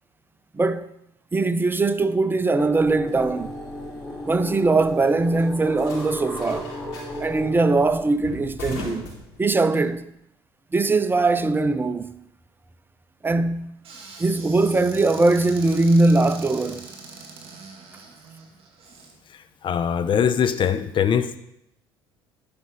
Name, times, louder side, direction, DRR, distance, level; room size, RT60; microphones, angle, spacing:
voice 1, 0.5-0.9 1.3-3.5 4.3-6.7 7.2-9.1 9.4-10.1 10.7-12.2 13.2-13.8 14.2-16.9, right 3 dB, 15° right, 0.6 m, -21 dB
sound 1, 2.6-7.7, equal, ahead, 2.9 m, -35 dB
sound 2, 2.7-9.9, left 2 dB, 70° left, 4.5 m, -40 dB
Squeak / Cupboard open or close, 13.8-19.1, right 4 dB, 45° right, 2.6 m, -42 dB
voice 2, 19.6-21.4, left 8 dB, 40° left, 0.8 m, -22 dB
11.5 x 5.5 x 4.9 m
hypercardioid pair, 60°, 13 cm